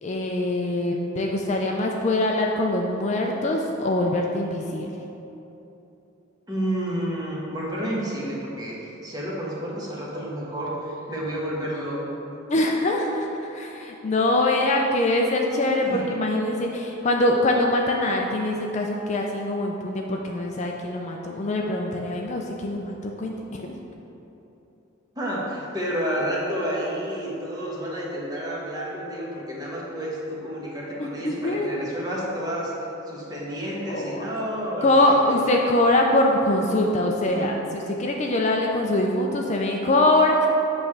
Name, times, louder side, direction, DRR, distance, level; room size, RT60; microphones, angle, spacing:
voice 1, 0.0-4.9 12.5-23.8 31.0-31.7 33.9-34.4 34.8-40.5, left 1 dB, 35° left, 1 dB, 0.4 m, -23 dB
voice 2, 6.5-12.2 15.8-16.0 25.2-32.7 33.1-35.2 37.3-37.5, equal, 20° right, -5 dB, 1.2 m, -30 dB
7.9 x 3.2 x 5.9 m, 3.0 s
head